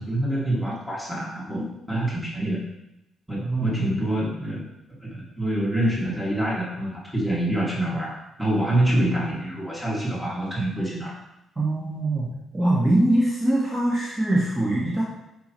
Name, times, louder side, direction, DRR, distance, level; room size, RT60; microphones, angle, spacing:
voice 1, 0.0-1.6 1.9-2.6 3.3-4.6 5.0-11.2, right 1 dB, 5° right, -6 dB, 2.4 m, -26 dB
voice 2, 3.4-3.9 11.6-15.0, right 1 dB, 25° right, -7 dB, 1.8 m, -23 dB
6.1 x 5.8 x 3.1 m, 0.87 s
cardioid pair, 90°, 0 cm